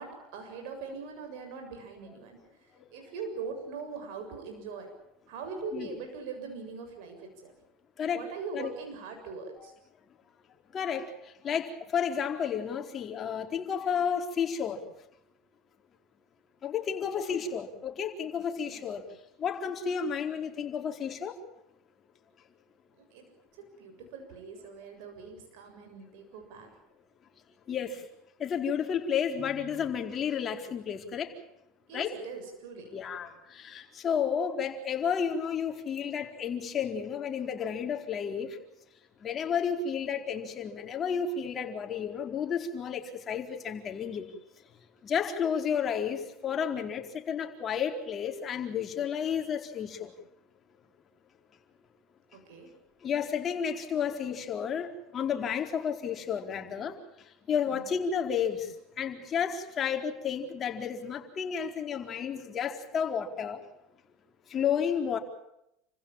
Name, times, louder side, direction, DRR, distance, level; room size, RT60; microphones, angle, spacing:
voice 1, 0.0-2.4 2.9-4.9 5.3-7.5 8.1-9.7 17.3-17.6 18.6-18.8 23.0-26.7 31.9-32.9 52.3-52.7 57.6-57.9, right 4 dB, 70° right, 5 dB, 7.1 m, -41 dB
voice 2, 10.7-14.8 16.6-19.0 19.4-21.3 27.7-28.0 28.4-31.3 31.9-32.1 32.9-38.6 39.2-44.3 45.0-50.1 53.0-56.9 57.5-63.6 64.5-65.2, left 7 dB, 40° left, 3 dB, 4.5 m, -32 dB
29.5 x 15.5 x 8.9 m, 0.82 s
supercardioid pair, 95°, 0 cm